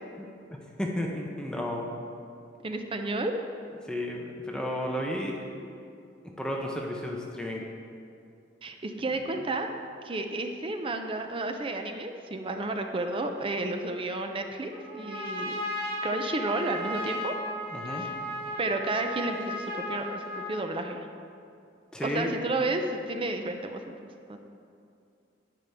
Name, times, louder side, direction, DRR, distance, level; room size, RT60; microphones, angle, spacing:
voice 1, 0.8-1.8 3.9-5.4 6.4-7.6 17.7-18.1 21.9-22.3, left 1 dB, 5° left, -1 dB, 0.7 m, -32 dB
voice 2, 2.6-3.3 8.6-9.7 10.0-15.5 16.0-17.4 18.0-18.1 18.6-21.0 22.0-24.0 24.3-24.4, right 2 dB, 30° right, 5 dB, 0.5 m, -31 dB
Trumpet, 14.7-20.7, left 1 dB, 55° right, 2.3 m, -35 dB
10.5 x 9.1 x 3.5 m, 2.5 s
head